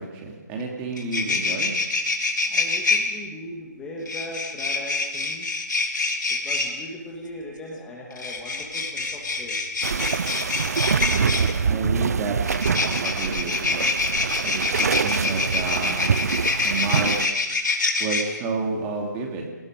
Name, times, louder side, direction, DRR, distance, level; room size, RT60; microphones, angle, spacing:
voice 1, 0.0-1.7 10.7-13.9 14.4-16.1 16.6-17.2 18.0-19.5, right 3 dB, 15° right, 0 dB, 2.8 m, -30 dB
sound 1, 0.6-0.7 0.9-3.0 4.1-6.7 8.1-11.5 12.4-18.2, left 3 dB, 80° left, 3.8 m, -25 dB
voice 2, 2.5-5.5 6.3-9.6, left 1 dB, 10° left, -2 dB, 1.8 m, -38 dB
sound 2, 9.8-17.3, right 6 dB, 55° right, 0.6 m, -25 dB
29.0 x 19.0 x 5.0 m, 1.2 s
hypercardioid pair, 165°, 10 cm